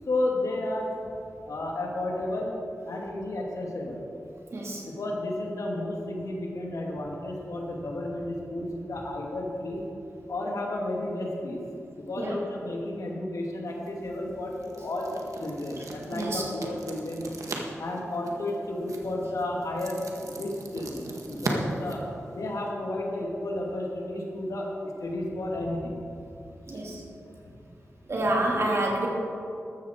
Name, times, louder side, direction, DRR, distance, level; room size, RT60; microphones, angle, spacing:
voice 1, 0.1-0.9 1.5-2.6 2.9-4.0 4.9-9.8 10.3-11.6 12.0-15.1 15.4-17.2 17.8-22.0 22.3-26.0 27.5-27.6 28.3-28.4, left 1 dB, 90° left, -1 dB, 2.6 m, -32 dB
voice 2, 4.5-4.8 12.2-12.4 16.1-16.4 26.7-27.0 28.1-29.1, right 1 dB, 55° right, -2 dB, 2.9 m, -27 dB
sound 1, 13.7-22.7, right 2 dB, 85° right, 1.7 m, -39 dB
14.0 x 13.0 x 4.6 m, 2.6 s
wide cardioid pair, 105°, 5 cm